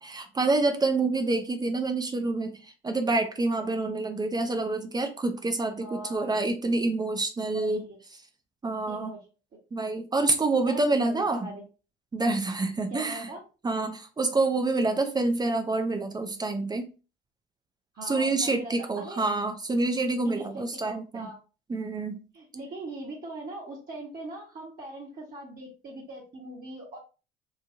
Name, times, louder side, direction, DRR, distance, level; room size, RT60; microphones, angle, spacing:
voice 1, 0.0-7.8 8.6-9.1 9.7-11.5 12.1-13.3 13.6-16.9 18.0-21.3 21.7-22.2, right 3 dB, 15° right, 6 dB, 0.5 m, -27 dB
voice 2, 5.8-6.3 7.5-8.0 8.9-9.2 10.7-11.6 12.9-13.4 17.9-19.2 20.2-21.4 22.3-27.0, right 2 dB, 30° right, -4 dB, 1.0 m, -40 dB
3.1 x 2.2 x 2.5 m, 0.33 s
figure-of-eight pair, 65°, 30 cm